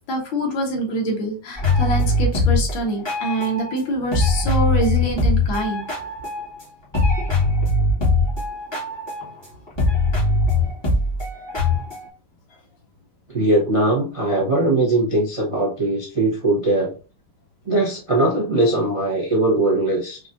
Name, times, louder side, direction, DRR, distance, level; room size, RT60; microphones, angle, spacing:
voice 1, 0.1-5.9, right 1 dB, 65° left, 1 dB, 1.8 m, -25 dB
sound 1, 1.6-3.8 4.1-6.6 6.9-12.1, left 2 dB, 15° left, 1.4 m, -21 dB
voice 2, 13.3-16.9 17.6-20.2, right 2 dB, 35° right, -4 dB, 0.5 m, -20 dB
4.8 x 2.7 x 2.5 m, 0.35 s
omnidirectional pair, 2.4 m